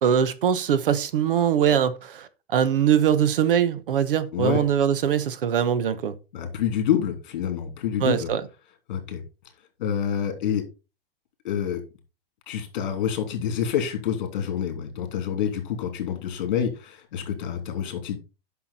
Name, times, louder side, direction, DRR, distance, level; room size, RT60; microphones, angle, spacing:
voice 1, 0.0-6.1 8.0-8.4, right 8 dB, 65° right, 1.1 m, -22 dB
voice 2, 4.3-4.6 6.3-8.3 8.9-9.2 9.8-10.6 11.4-11.8 12.5-18.2, left 9 dB, 50° left, 3.1 m, -27 dB
10.5 x 6.1 x 4.2 m
hypercardioid pair, 170°, 30 cm